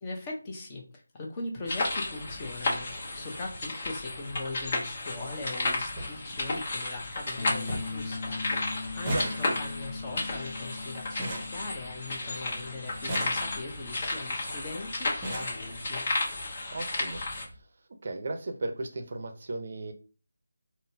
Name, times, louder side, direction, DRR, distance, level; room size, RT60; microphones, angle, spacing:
voice 1, 0.0-16.0, left 2 dB, 20° left, -1 dB, 0.8 m, -40 dB
sound 1, 1.7-17.4, left 2 dB, 35° left, 1.1 m, -33 dB
sound 2, 3.8-4.0 5.3-5.4 5.6-5.7 6.0-6.1 6.6-7.1 7.3-7.4 7.7-8.1 8.3-12.3 12.9-13.9 14.7-14.8 15.0-15.6 16.6-16.7 17.0-17.2 17.5-17.6, right 1 dB, 15° right, 0.8 m, -37 dB
Bass guitar, 7.4-13.6, left 3 dB, 70° left, 0.6 m, -40 dB
voice 2, 16.7-17.2 18.0-19.9, right 2 dB, 45° right, 6 dB, 0.6 m, -35 dB
3.9 x 2.1 x 2.7 m, 0.35 s
figure-of-eight pair, 165°, 0 cm